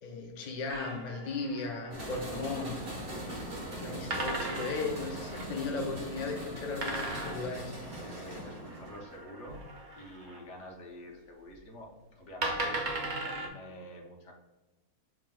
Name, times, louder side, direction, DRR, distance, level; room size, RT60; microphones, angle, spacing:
voice 1, 0.0-2.9 3.8-7.8, left 3 dB, 85° left, 1 dB, 0.3 m, -36 dB
sound 1, 0.7-2.4 4.1-5.5 6.8-10.4 11.5-11.6 12.4-13.5, right 2 dB, 60° right, 0.5 m, -38 dB
sound 2, 1.9-9.0, equal, 40° right, 1.2 m, -41 dB
voice 2, 3.4-3.8 8.0-9.6 9.9-14.3, equal, 55° left, 1 dB, 1.1 m, -48 dB
7.3 x 3.2 x 2.2 m, 1.1 s
omnidirectional pair, 1.7 m